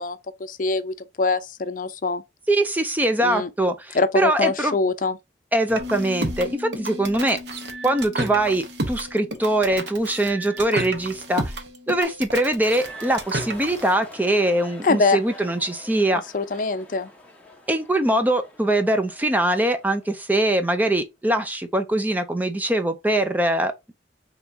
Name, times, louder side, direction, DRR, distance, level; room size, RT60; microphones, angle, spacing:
voice 1, 0.0-2.2 3.2-3.5 3.9-5.2 14.8-15.2 16.3-17.1, left 3 dB, 50° left, 0.5 m, -24 dB
voice 2, 2.5-4.8 5.5-7.4 7.8-11.6 11.9-16.2 17.7-23.7, right 1 dB, 10° right, 0.4 m, -22 dB
sound 1, 5.7-13.9, right 2 dB, 70° right, 0.9 m, -31 dB
Bass guitar, 5.8-12.0, left 4 dB, 45° right, 1.8 m, -41 dB
sound 2, 12.7-20.8, left 1 dB, 10° left, 1.0 m, -46 dB
5.7 x 3.0 x 2.7 m
head